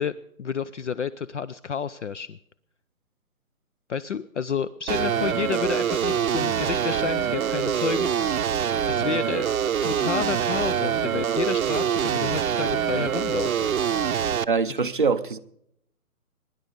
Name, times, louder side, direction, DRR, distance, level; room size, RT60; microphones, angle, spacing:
voice 1, 0.0-2.4 3.9-8.5 8.8-9.5 9.8-13.7, left 7 dB, 55° left, 0.5 m, -30 dB
sound 1, 4.9-14.4, right 8 dB, 70° right, 0.7 m, -25 dB
voice 2, 14.5-15.4, right 5 dB, 35° right, 0.6 m, -23 dB
23.0 x 10.5 x 5.2 m
hypercardioid pair, 170°, 44 cm